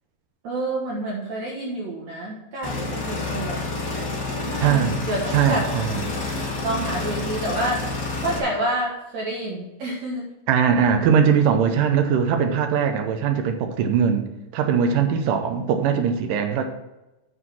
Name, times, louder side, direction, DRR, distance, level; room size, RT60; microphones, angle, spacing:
voice 1, 0.4-3.6 4.3-5.7 6.6-7.8 8.2-10.3, right 1 dB, 60° right, -3 dB, 2.0 m, -28 dB
sound 1, 2.6-8.4, left 3 dB, 40° left, 1.6 m, -29 dB
voice 2, 4.6-5.1 5.3-6.0 10.5-14.3 14.5-16.6, right 7 dB, 80° right, 5 dB, 1.9 m, -20 dB
7.3 x 6.5 x 5.9 m, 0.98 s
omnidirectional pair, 4.8 m